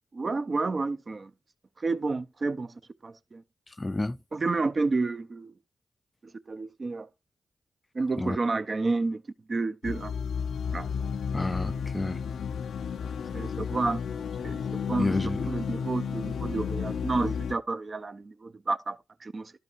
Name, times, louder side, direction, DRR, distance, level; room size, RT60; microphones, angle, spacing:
voice 1, 0.1-1.3 1.8-2.7 3.0-3.4 4.3-5.5 6.5-7.1 7.9-9.2 9.5-10.1 10.7-10.9 13.3-14.0 14.4-14.6 14.9-15.1 15.5-19.5, right 3 dB, 50° right, 0.7 m, -30 dB
voice 2, 3.7-4.2 8.2-8.4 11.3-12.2 15.0-15.5, left 2 dB, 25° left, 0.4 m, -30 dB
sound 1, 9.8-17.5, left 6 dB, 90° left, 0.5 m, -32 dB
11.5 x 5.1 x 4.5 m
cardioid pair, 50°, 0 cm